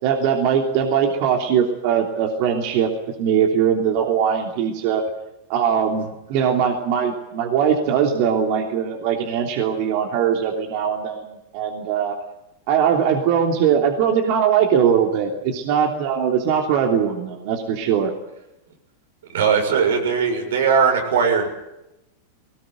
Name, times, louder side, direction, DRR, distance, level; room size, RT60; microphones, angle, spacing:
voice 1, 0.0-5.0 5.5-12.1 12.7-18.1, right 8 dB, 55° right, 2 dB, 3.2 m, -21 dB
voice 2, 19.3-21.5, right 6 dB, 85° right, 4 dB, 6.7 m, -19 dB
19.5 x 19.0 x 9.4 m, 0.91 s
supercardioid pair, 145°, 0 cm